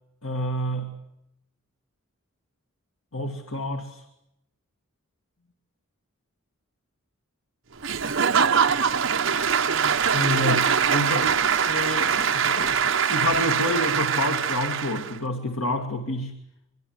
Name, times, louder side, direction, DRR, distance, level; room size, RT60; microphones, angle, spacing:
voice 1, 0.2-0.9 3.1-4.0 10.1-16.3, left 1 dB, 75° left, 6 dB, 2.3 m, -29 dB
Applause / Crowd, 7.8-15.2, right 7 dB, 60° right, 1.0 m, -23 dB
25.0 x 22.5 x 7.9 m, 0.84 s
head